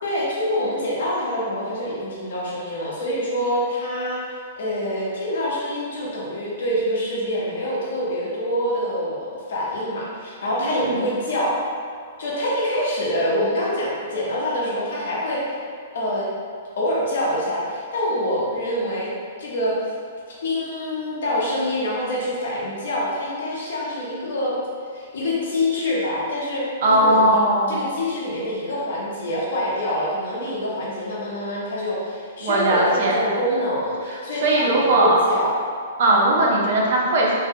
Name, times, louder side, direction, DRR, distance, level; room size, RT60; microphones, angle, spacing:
voice 1, 0.0-4.2 4.6-11.6 12.2-15.4 15.9-16.3 16.8-19.1 19.4-19.7 20.3-24.6 24.9-27.4 27.7-35.5, left 1 dB, 65° left, -5 dB, 0.7 m, -25 dB
voice 2, 10.6-11.0 26.8-27.8 32.4-33.2 34.4-35.2 36.0-37.3, right 1 dB, 45° right, -3 dB, 0.4 m, -19 dB
2.7 x 2.1 x 2.7 m, 2.2 s
hypercardioid pair, 175°, 0 cm